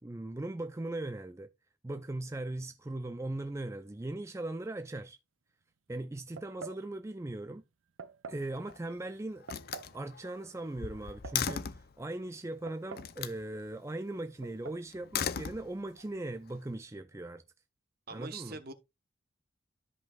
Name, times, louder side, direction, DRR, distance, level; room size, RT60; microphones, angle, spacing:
voice 1, 0.0-1.5 1.8-5.2 5.9-7.6 8.3-9.5 9.9-17.4 18.1-18.6, right 2 dB, 15° right, 0.4 m, -39 dB
sound 1, 6.4-6.9 8.0-8.5 9.5-10.0 11.0-11.7 12.7-13.2 13.4-13.5 14.4-14.8, right 5 dB, 85° right, 0.6 m, -45 dB
Slam, 8.4-9.0 9.4-11.9 13.0-13.4 14.9-16.1, left 8 dB, 50° left, 0.5 m, -37 dB
voice 2, 18.1-18.7, right 3 dB, 50° right, 1.0 m, -42 dB
13.5 x 5.3 x 2.3 m
head